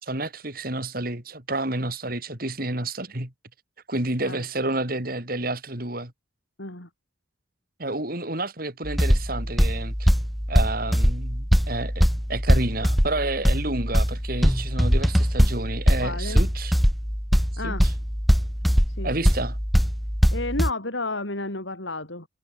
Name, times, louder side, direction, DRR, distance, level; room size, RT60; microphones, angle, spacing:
voice 1, 0.0-3.3 3.9-6.1 7.8-10.1 10.5-16.7 17.6-17.9 19.0-19.6, right 2 dB, 50° right, 3.8 m, -30 dB
voice 2, 6.6-6.9 16.0-16.4 17.6-17.8 19.0-19.3 20.3-22.3, left 2 dB, 75° left, 5.4 m, -31 dB
sound 1, 8.8-20.7, equal, ahead, 4.4 m, -22 dB
head